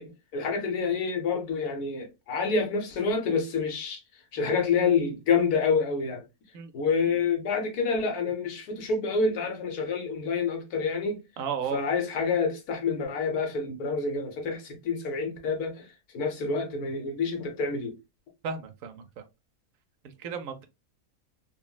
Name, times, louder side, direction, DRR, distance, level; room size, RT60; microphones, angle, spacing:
voice 1, 0.0-4.0 4.3-6.2 6.7-11.2 11.7-15.9 16.1-18.0, left 5 dB, 85° left, 1.4 m, -28 dB
voice 2, 6.5-6.9 11.4-11.8 18.4-19.2 20.0-20.7, right 6 dB, 70° right, 1.0 m, -34 dB
4.0 x 2.0 x 2.2 m
omnidirectional pair, 1.6 m